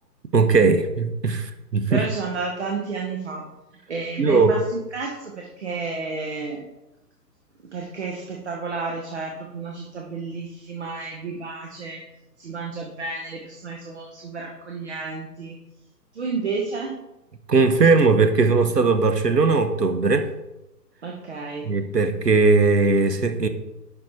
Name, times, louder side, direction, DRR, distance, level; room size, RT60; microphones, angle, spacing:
voice 1, 0.3-2.0 4.2-4.6 17.5-20.3 21.6-23.5, right 4 dB, 75° right, 9 dB, 1.2 m, -19 dB
voice 2, 1.9-3.4 3.9-4.6 4.9-6.6 7.7-12.0 12.4-15.5 16.1-16.9 21.0-21.7, right 4 dB, 40° right, 1 dB, 1.3 m, -31 dB
11.5 x 4.8 x 4.3 m, 0.97 s
figure-of-eight pair, 140°, 50 cm